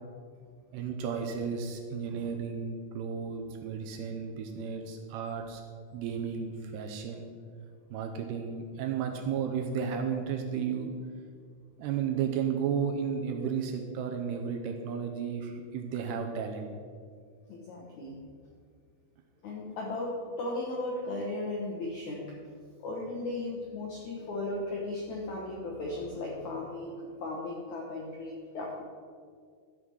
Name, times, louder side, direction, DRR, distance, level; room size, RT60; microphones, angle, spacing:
voice 1, 0.7-5.6 5.9-7.3 7.9-10.9 11.8-16.7, right 7 dB, 75° right, 4 dB, 2.6 m, -33 dB
voice 2, 17.5-18.2 19.4-22.3 22.8-28.8, left 2 dB, 75° left, -2 dB, 1.7 m, -36 dB
13.5 x 5.6 x 6.3 m, 2.1 s
omnidirectional pair, 5.2 m